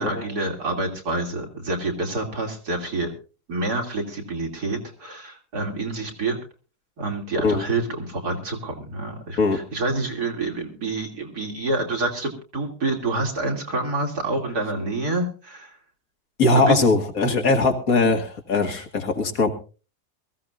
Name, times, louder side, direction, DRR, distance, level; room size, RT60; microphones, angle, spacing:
voice 1, 0.0-3.1 3.5-6.4 7.0-15.8 16.5-16.8 17.3-17.6, right 2 dB, 80° right, 1 dB, 3.3 m, -27 dB
voice 2, 16.4-19.5, left 3 dB, 65° left, 4 dB, 2.3 m, -20 dB
23.0 x 15.0 x 2.5 m, 0.34 s
omnidirectional pair, 1.7 m